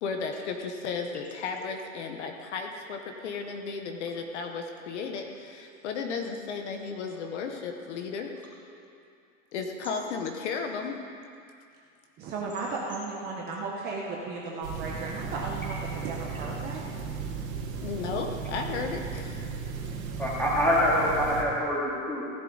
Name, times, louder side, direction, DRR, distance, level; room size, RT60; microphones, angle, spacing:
voice 1, 0.0-8.3 9.5-11.0 17.8-19.5, left 5 dB, 55° left, 4 dB, 1.1 m, -34 dB
voice 2, 12.2-16.8, right 3 dB, 25° right, -2 dB, 1.0 m, -35 dB
sound 1, 14.6-21.4, right 5 dB, 85° right, 2.3 m, -35 dB
voice 3, 20.2-22.2, equal, 5° left, -8 dB, 2.7 m, -25 dB
16.0 x 11.5 x 4.0 m, 2.4 s
supercardioid pair, 165°, 40 cm